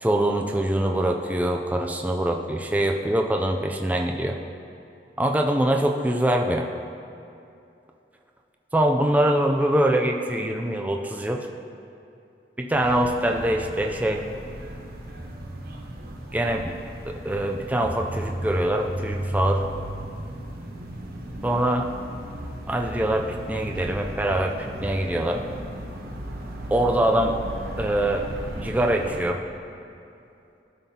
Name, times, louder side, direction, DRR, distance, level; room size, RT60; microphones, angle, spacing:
voice 1, 0.0-4.4 5.2-6.7 8.7-11.5 12.6-14.2 16.3-16.8 17.0-19.6 21.4-21.9 22.7-24.6 24.8-25.4 26.7-27.4 27.8-28.2 28.6-29.4, right 1 dB, 10° right, 2 dB, 0.3 m, -23 dB
sound 1, 12.7-29.2, right 1 dB, 55° right, 0.7 m, -35 dB
13.0 x 5.7 x 2.8 m, 2.7 s
head